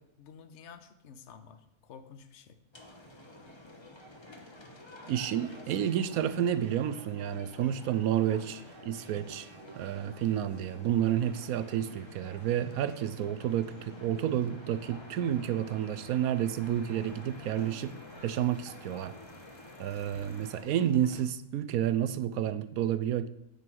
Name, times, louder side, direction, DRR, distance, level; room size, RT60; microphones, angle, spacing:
voice 1, 0.0-2.6 5.4-5.7, left 6 dB, 60° left, 1.1 m, -51 dB
sound 1, 2.7-21.2, left 1 dB, 20° left, 1.0 m, -50 dB
voice 2, 5.1-9.5 9.8-17.9 18.2-19.1 19.8-23.3, right 10 dB, 80° right, 1.1 m, -30 dB
sound 2, 5.4-7.0 7.7-11.4, right 4 dB, 60° right, 1.3 m, -54 dB
sound 3, 11.0-20.6, left 2 dB, 75° left, 3.2 m, -55 dB
9.7 x 8.2 x 4.6 m
omnidirectional pair, 1.5 m